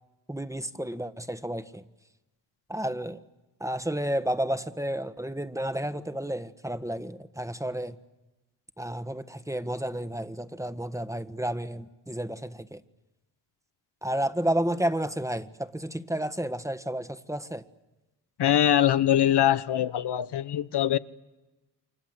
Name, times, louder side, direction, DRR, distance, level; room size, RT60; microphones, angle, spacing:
voice 1, 0.3-1.8 2.7-3.2 3.6-8.0 8.8-12.8 14.0-17.6, right 1 dB, 5° right, 1.6 m, -31 dB
voice 2, 18.4-21.0, left 11 dB, 65° left, 1.0 m, -23 dB
29.5 x 24.5 x 8.2 m
cardioid pair, 55°, 43 cm